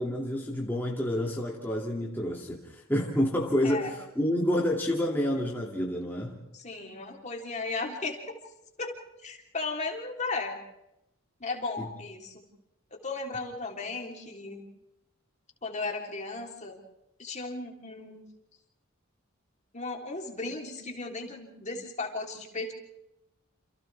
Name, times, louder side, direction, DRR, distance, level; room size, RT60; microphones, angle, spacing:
voice 1, 0.0-6.4 11.8-11.9, equal, 10° left, -3 dB, 2.5 m, -29 dB
voice 2, 6.5-8.4 8.8-10.6 11.4-12.5 12.9-14.6 15.6-16.8 17.2-18.2 19.7-22.7, left 3 dB, 35° left, 1 dB, 3.6 m, -35 dB
29.5 x 28.5 x 3.5 m, 0.87 s
head